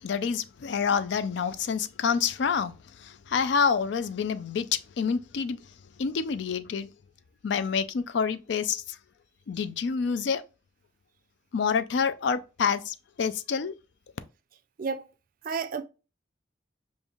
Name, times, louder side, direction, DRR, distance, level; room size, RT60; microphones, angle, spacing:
voice 1, 0.0-2.7 3.0-5.6 6.0-6.9 7.4-9.0 9.5-10.4 11.5-13.7, left 6 dB, 65° left, 0.4 m, -27 dB
voice 2, 15.4-15.8, right 5 dB, 45° right, 0.4 m, -31 dB
5.2 x 2.6 x 2.3 m
head